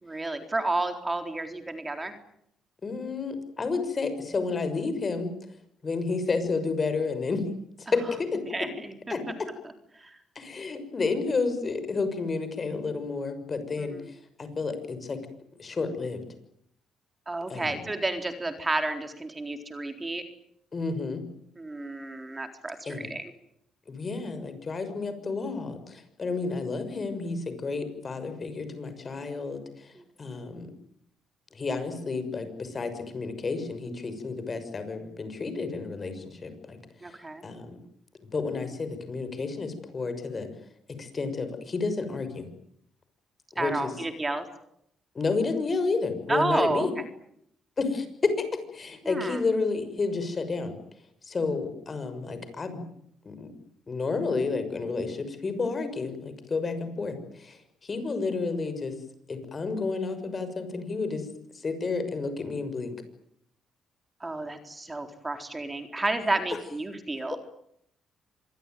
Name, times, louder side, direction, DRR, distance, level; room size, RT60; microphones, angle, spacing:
voice 1, 0.0-2.1 8.5-8.9 9.9-10.2 13.8-14.1 17.3-20.2 21.6-23.3 30.0-30.1 37.0-37.4 43.6-44.5 46.3-47.0 49.0-49.4 64.2-67.4, right 2 dB, 20° right, 6 dB, 4.0 m, -31 dB
voice 2, 2.8-5.3 5.8-7.4 7.8-8.4 9.1-9.2 10.3-15.2 15.6-16.2 17.5-17.8 20.7-21.2 22.9-23.1 23.9-29.9 30.2-30.7 31.5-36.8 37.0-37.2 37.4-37.8 38.2-40.5 41.0-42.5 43.5-43.9 45.1-46.9 47.8-50.7 51.2-52.8 53.2-53.5 53.9-59.0 59.3-61.3 61.5-62.9 67.3-67.4, left 4 dB, 35° left, 10 dB, 6.3 m, -31 dB
26.5 x 21.5 x 9.4 m, 0.73 s
cardioid pair, 90°, 0 cm